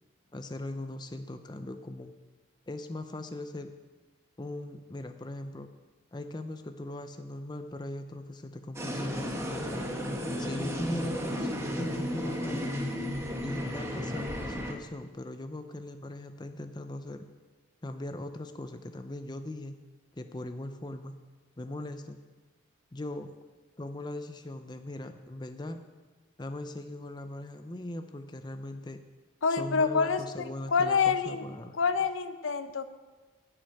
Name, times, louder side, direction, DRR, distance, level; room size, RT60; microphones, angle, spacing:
voice 1, 0.3-2.1 2.7-3.7 4.4-5.7 6.1-9.9 10.4-12.9 13.4-17.3 17.8-19.8 20.1-21.2 21.6-22.2 22.9-23.3 23.8-25.8 26.4-29.0 29.5-31.8, left 1 dB, 20° left, 8 dB, 0.5 m, -39 dB
sound 1, 8.7-14.7, equal, 15° right, 1.1 m, -33 dB
voice 2, 29.4-31.4 31.8-32.9, left 5 dB, 85° left, 11 dB, 0.7 m, -27 dB
11.0 x 6.3 x 8.9 m, 1.3 s
head